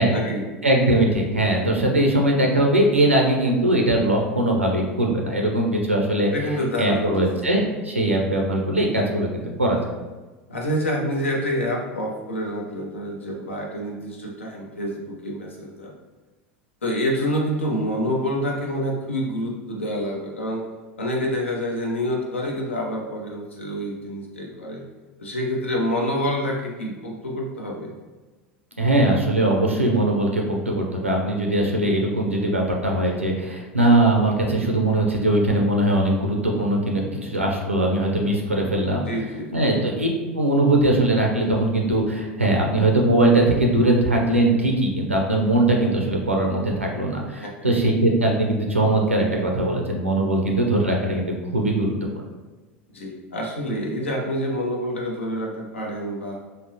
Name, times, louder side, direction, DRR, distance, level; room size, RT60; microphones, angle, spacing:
voice 1, 0.0-0.5 6.3-7.4 10.5-15.9 16.8-20.6 21.0-24.8 25.2-27.9 39.1-39.5 47.4-47.7 52.9-56.4, equal, 75° left, -1 dB, 0.6 m, -27 dB
voice 2, 0.6-6.3 6.8-9.8 28.8-39.1 39.5-52.2, right 1 dB, 90° right, 0 dB, 0.4 m, -21 dB
3.5 x 2.0 x 2.7 m, 1.2 s
figure-of-eight pair, 80°, 7 cm